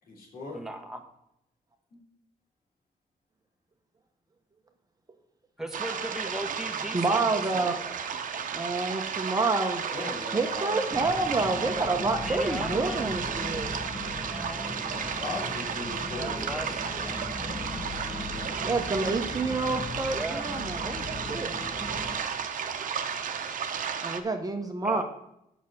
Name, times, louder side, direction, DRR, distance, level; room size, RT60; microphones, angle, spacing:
voice 1, 0.0-0.6 1.9-2.0 9.8-10.9 14.9-17.8, left 3 dB, 80° left, -2 dB, 3.2 m, -39 dB
voice 2, 0.5-1.0 5.6-8.0 12.2-13.5 14.1-14.8 16.2-17.2 17.9-18.0 20.1-20.5 24.8-25.0, right 1 dB, 5° right, 3 dB, 1.4 m, -38 dB
sound 1, 5.7-24.2, right 7 dB, 65° right, 0.9 m, -33 dB
voice 3, 6.9-7.7 8.5-9.8 10.3-13.7 18.6-21.5 24.0-25.0, right 3 dB, 25° right, 4 dB, 1.0 m, -28 dB
sound 2, 10.9-22.2, left 2 dB, 15° left, 0.8 m, -39 dB
7.3 x 6.0 x 7.2 m, 0.81 s
cardioid pair, 95°, 15 cm